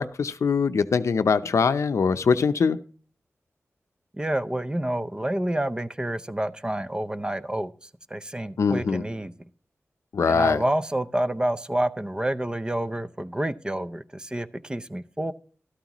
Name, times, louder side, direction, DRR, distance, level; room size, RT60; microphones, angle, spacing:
voice 1, 0.0-2.8 8.6-9.0 10.1-10.6, left 5 dB, 75° left, 12 dB, 0.6 m, -22 dB
voice 2, 4.2-9.3 10.3-15.3, right 1 dB, 15° right, 13 dB, 0.6 m, -28 dB
13.0 x 12.5 x 3.0 m, 0.43 s
wide cardioid pair, 105°, 5 cm